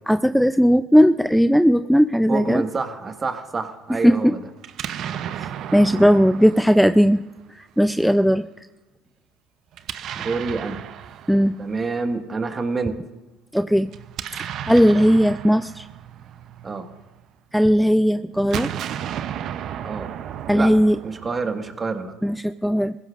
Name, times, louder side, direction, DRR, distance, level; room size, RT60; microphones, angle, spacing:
voice 1, 0.1-2.6 3.9-4.3 5.7-7.2 7.5-8.4 11.3-11.6 13.5-13.9 14.4-15.9 17.5-18.7 20.5-21.0 22.2-23.0, equal, ahead, 11 dB, 0.4 m, -17 dB
voice 2, 2.3-4.4 8.2-8.3 10.2-10.8 11.6-12.9 16.6-16.9 19.8-20.1 20.5-20.7 21.0-22.1, right 4 dB, 30° right, 5 dB, 1.6 m, -27 dB
Explosion, 4.6-7.7 9.7-12.0 13.9-17.3 18.3-21.7, right 10 dB, 55° right, 0.7 m, -34 dB
22.0 x 15.5 x 2.5 m, 1.1 s
hypercardioid pair, 75°, 0 cm